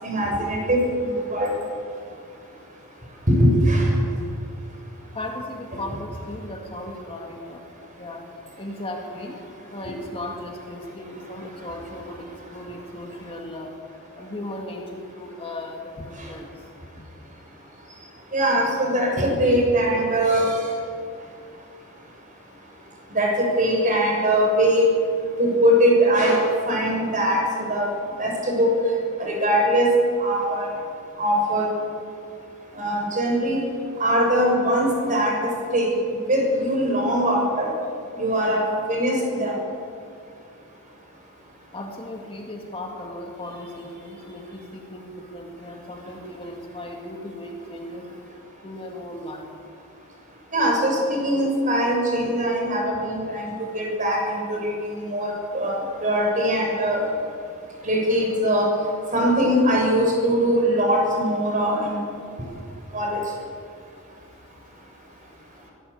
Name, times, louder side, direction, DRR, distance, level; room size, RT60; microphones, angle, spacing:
voice 1, 0.0-1.5 3.3-3.9 9.8-9.9 16.2-16.3 18.3-20.7 23.1-24.9 25.4-27.4 27.7-27.9 28.2-28.8 29.2-29.9 30.2-30.7 31.2-31.7 32.7-33.6 34.0-35.9 36.3-37.7 38.1-39.5 50.5-57.0 57.8-58.7 59.1-62.0 62.9-63.2, equal, 35° right, 0 dB, 6.6 m, -21 dB
voice 2, 5.1-7.6 8.0-8.2 8.6-9.4 9.7-13.7 14.2-16.5 41.7-48.0 48.6-49.5, left 1 dB, 25° left, 1 dB, 2.2 m, -36 dB
23.5 x 16.5 x 8.5 m, 2.4 s
head